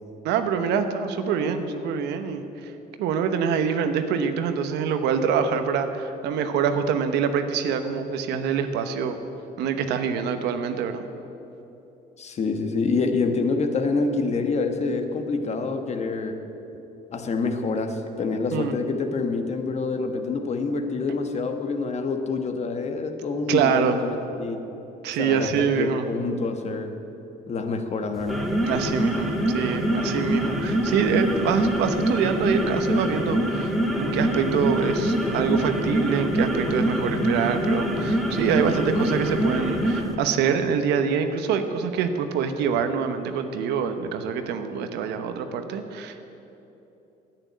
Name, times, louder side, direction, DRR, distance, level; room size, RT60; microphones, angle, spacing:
voice 1, 0.2-2.4 3.0-9.2 9.6-11.1 18.5-18.8 23.5-24.0 25.0-26.0 28.6-33.7 34.0-46.3, right 7 dB, 85° right, 8 dB, 1.0 m, -25 dB
voice 2, 12.2-16.4 17.1-24.6 25.2-27.0 27.5-28.5, left 4 dB, 40° left, 6 dB, 1.2 m, -27 dB
sound 1, 28.2-40.1, equal, ahead, 1.8 m, -25 dB
10.0 x 8.9 x 9.3 m, 3.0 s
cardioid pair, 110°, 17 cm